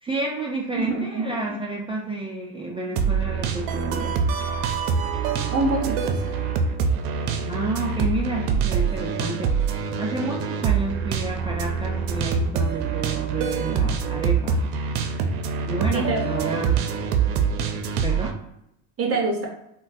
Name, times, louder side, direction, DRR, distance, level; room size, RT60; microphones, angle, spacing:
voice 1, 0.0-4.1 7.5-9.6 10.0-14.6 15.7-16.8 18.0-18.4, right 2 dB, 15° right, -3 dB, 0.3 m, -30 dB
voice 2, 0.8-1.5 5.5-6.3 15.9-16.2 19.0-19.5, right 2 dB, 30° right, 0 dB, 0.8 m, -25 dB
sound 1, 3.0-18.3, right 6 dB, 85° right, 0.6 m, -25 dB
3.7 x 2.2 x 2.5 m, 0.80 s
supercardioid pair, 100°, 46 cm